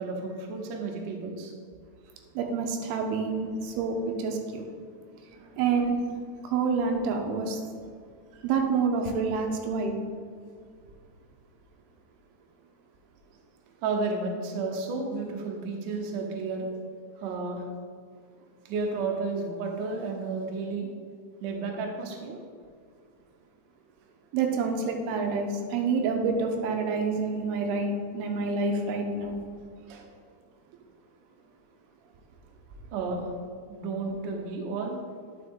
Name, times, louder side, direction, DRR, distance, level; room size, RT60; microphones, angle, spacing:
voice 1, 0.0-1.5 5.3-5.6 8.3-8.5 13.8-16.7 17.2-17.7 18.7-20.9 21.4-22.4 29.9-30.1 32.9-33.3 33.7-35.0, right 3 dB, 70° right, 1 dB, 2.2 m, -32 dB
voice 2, 2.4-4.7 5.6-6.0 6.4-7.6 8.4-9.9 24.3-29.4, right 4 dB, 90° right, 3 dB, 2.8 m, -27 dB
9.8 x 6.1 x 3.7 m, 2.1 s
omnidirectional pair, 4.5 m